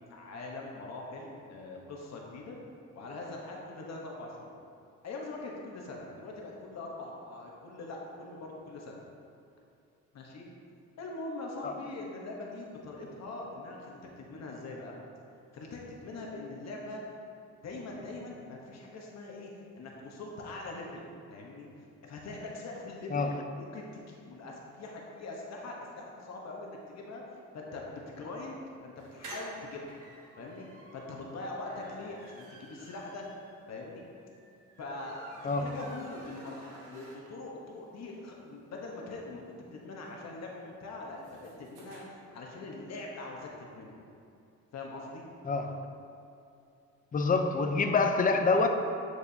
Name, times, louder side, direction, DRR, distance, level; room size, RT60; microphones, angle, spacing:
voice 1, 0.1-2.6 2.9-4.5 5.0-9.0 10.1-10.5 11.0-14.9 15.5-17.0 17.6-19.5 19.8-29.9 30.4-33.2 33.7-34.1 34.8-43.9 44.7-45.2, left 2 dB, 60° left, -1 dB, 1.1 m, -42 dB
sound 1, 29.0-37.6 38.0-38.1 38.3-38.4 38.6-42.0, right 1 dB, 85° right, 1.3 m, -51 dB
voice 2, 47.1-48.7, left 4 dB, 30° left, 5 dB, 0.5 m, -26 dB
8.9 x 4.7 x 2.8 m, 2.6 s
cardioid pair, 90°, 30 cm